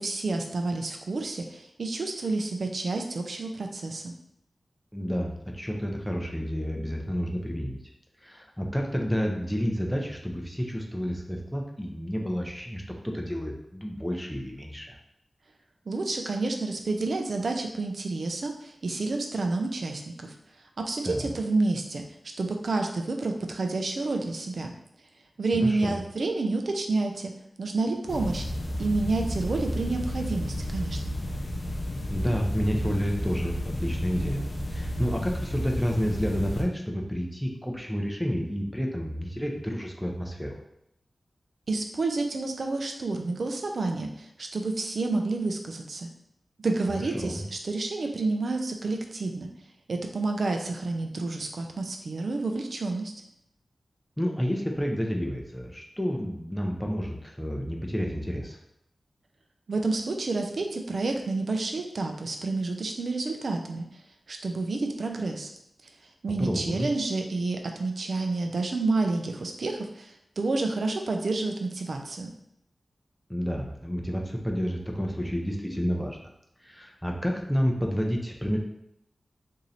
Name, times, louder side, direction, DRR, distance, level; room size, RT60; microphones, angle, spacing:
voice 1, 0.0-4.2 15.9-20.3 20.9-22.0 22.4-24.7 25.4-27.3 27.6-28.4 28.8-31.0 41.7-46.1 46.6-49.5 49.9-53.1 59.7-63.8 64.3-65.5 66.2-72.3, right 3 dB, 70° right, 3 dB, 0.5 m, -29 dB
voice 2, 4.9-7.8 8.2-15.0 21.0-21.3 25.5-26.0 32.1-40.6 46.9-47.4 54.2-58.6 66.4-66.9 73.3-76.3 76.6-78.6, equal, 5° left, 0 dB, 0.6 m, -30 dB
sound 1, 28.1-36.6, equal, 55° left, 0.5 m, -32 dB
3.0 x 2.7 x 4.0 m, 0.78 s
wide cardioid pair, 70°, 0 cm